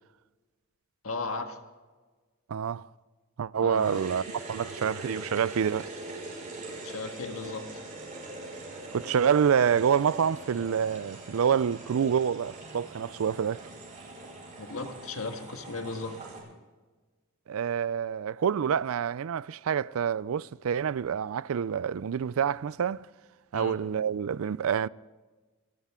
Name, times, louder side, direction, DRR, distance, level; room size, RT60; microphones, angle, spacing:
voice 1, 1.0-1.6 3.6-4.1 6.8-7.6 14.6-16.2 23.5-23.8, left 3 dB, 75° left, 1.6 m, -36 dB
voice 2, 2.5-2.9 3.4-5.9 8.9-13.7 17.5-23.1 23.5-24.9, right 7 dB, 75° right, 0.4 m, -27 dB
sound 1, 3.7-16.4, right 2 dB, 40° right, 6.2 m, -42 dB
27.0 x 13.0 x 3.7 m
head